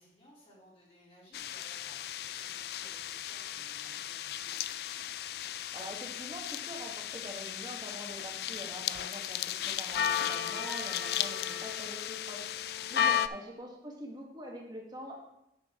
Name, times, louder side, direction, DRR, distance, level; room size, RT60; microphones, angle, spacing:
voice 1, 0.0-4.6 12.8-13.1, equal, 35° left, -6 dB, 3.3 m, -60 dB
sound 1, 1.3-13.3, left 10 dB, 60° left, 0.3 m, -35 dB
voice 2, 5.7-15.1, equal, 25° right, 0 dB, 1.6 m, -45 dB
10.0 x 6.5 x 3.7 m, 0.83 s
head